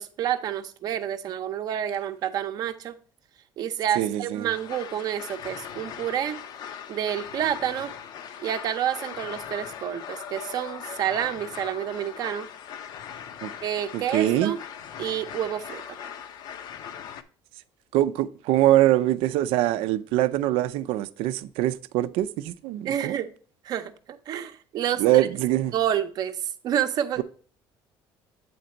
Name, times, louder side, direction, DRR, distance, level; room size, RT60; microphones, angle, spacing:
voice 1, 0.0-3.0 3.6-6.4 6.9-7.9 8.4-12.5 13.6-14.6 15.0-15.8 22.8-23.3 23.6-25.3 25.7-27.2, right 10 dB, 45° right, 0.7 m, -29 dB
voice 2, 4.0-4.5 13.4-13.5 13.9-14.5 17.9-23.2 25.0-25.7, right 14 dB, 90° right, 0.5 m, -23 dB
sound 1, 4.5-17.2, left 8 dB, 50° left, 0.6 m, -40 dB
8.6 x 3.9 x 4.3 m
cardioid pair, 170°, 9 cm